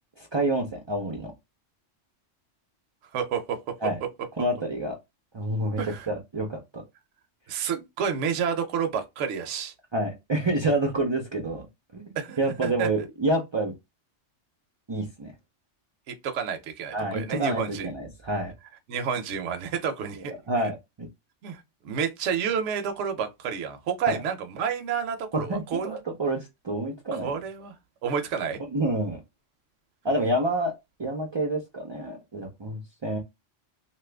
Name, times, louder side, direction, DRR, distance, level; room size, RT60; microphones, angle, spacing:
voice 1, 0.2-1.3 3.8-4.0 4.4-5.0 5.3-6.8 9.9-11.7 11.9-13.7 14.9-15.3 16.9-18.5 20.3-21.1 24.1-24.2 25.3-27.4 28.7-29.2 30.0-30.7 31.0-33.2, right 1 dB, 35° right, 0.4 m, -28 dB
voice 2, 3.1-3.7 5.8-6.1 7.5-9.7 12.2-12.9 16.1-17.9 18.9-20.3 21.4-26.0 27.2-27.7 28.0-28.6, right 7 dB, 75° right, 0.9 m, -30 dB
2.8 x 2.4 x 3.3 m
omnidirectional pair, 1.3 m